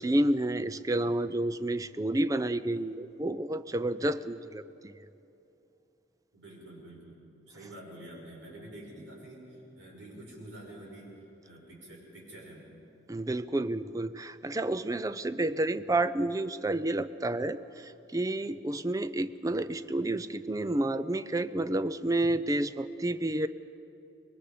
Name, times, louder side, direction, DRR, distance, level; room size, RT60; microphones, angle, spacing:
voice 1, 0.0-4.9 13.1-23.5, right 1 dB, 20° right, 13 dB, 0.4 m, -30 dB
voice 2, 6.3-7.2 7.5-12.8, right 1 dB, 85° right, -3 dB, 5.9 m, -48 dB
25.0 x 20.5 x 5.1 m, 2.8 s
head